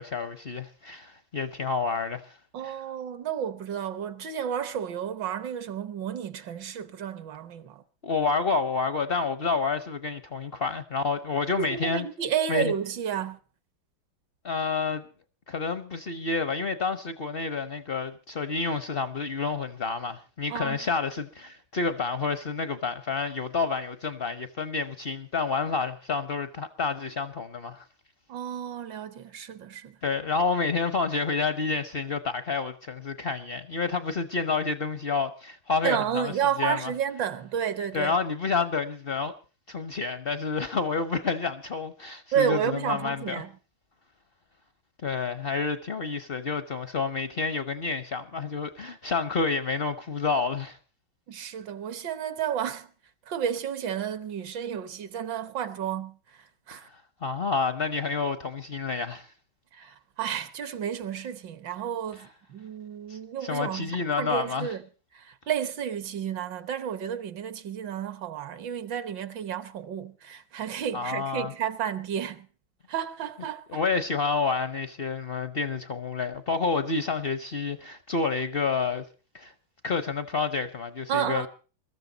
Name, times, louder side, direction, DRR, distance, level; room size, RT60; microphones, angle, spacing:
voice 1, 0.0-2.4 2.6-2.8 8.0-12.1 12.5-12.7 14.4-15.0 15.5-27.9 30.0-36.3 36.6-36.9 37.9-39.3 39.7-43.4 45.0-50.8 56.7-59.3 62.2-62.3 63.1-64.7 70.9-71.5 73.7-79.0 79.3-79.5 79.8-81.5, left 4 dB, 50° left, 0.6 m, -29 dB
voice 2, 2.5-7.8 11.6-13.4 20.5-20.8 28.3-29.9 35.8-38.2 42.3-43.5 51.3-52.9 53.3-56.2 56.7-56.9 59.7-64.8 65.1-72.5 72.9-73.8 81.1-81.5, right 9 dB, 70° right, 1.6 m, -31 dB
22.0 x 13.5 x 3.9 m
omnidirectional pair, 2.1 m